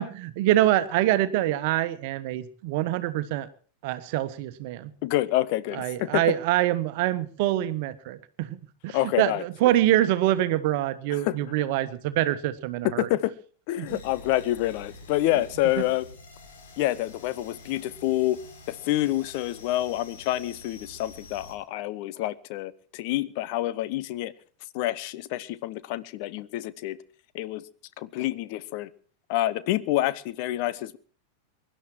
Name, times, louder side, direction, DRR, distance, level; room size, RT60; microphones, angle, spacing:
voice 1, 0.0-3.5 3.8-4.9 5.7-8.6 8.8-13.1 13.8-14.0, right 14 dB, 50° right, 12 dB, 1.3 m, -25 dB
voice 2, 5.0-6.3 8.9-9.8 11.1-11.4 12.8-13.3 13.7-16.1 16.8-18.4 18.7-24.3 24.7-27.0 27.3-27.6 28.0-28.9 29.3-31.0, left 15 dB, 45° left, 17 dB, 0.9 m, -27 dB
sound 1, 13.8-21.5, left 2 dB, 65° left, 4.5 m, -48 dB
23.5 x 11.5 x 4.5 m, 0.43 s
figure-of-eight pair, 90°, 0 cm